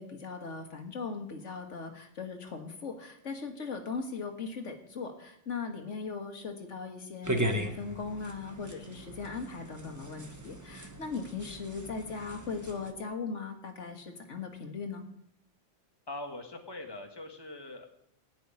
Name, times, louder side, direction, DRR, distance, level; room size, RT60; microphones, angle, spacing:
voice 1, 0.0-15.0, left 4 dB, 80° left, 5 dB, 1.9 m, -39 dB
sound 1, 7.2-12.9, right 1 dB, 15° right, 1.1 m, -37 dB
voice 2, 16.1-17.9, left 2 dB, 20° left, 3 dB, 1.8 m, -42 dB
16.0 x 6.2 x 9.8 m, 0.77 s
omnidirectional pair, 1.2 m